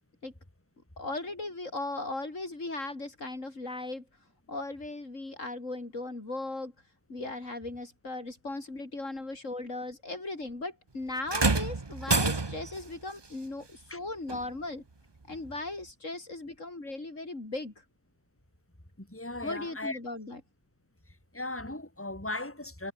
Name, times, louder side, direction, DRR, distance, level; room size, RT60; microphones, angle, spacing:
voice 1, 1.0-4.0 4.5-6.7 7.1-14.8 15.3-17.7 19.4-20.4, left 2 dB, 60° left, 4.6 m, -37 dB
sound 1, 11.3-12.8 14.3-14.4 15.3-15.4, right 3 dB, 20° right, 0.9 m, -27 dB
voice 2, 19.0-20.0 21.3-22.9, left 2 dB, 10° left, 3.7 m, -37 dB
omnidirectional pair, 1.5 m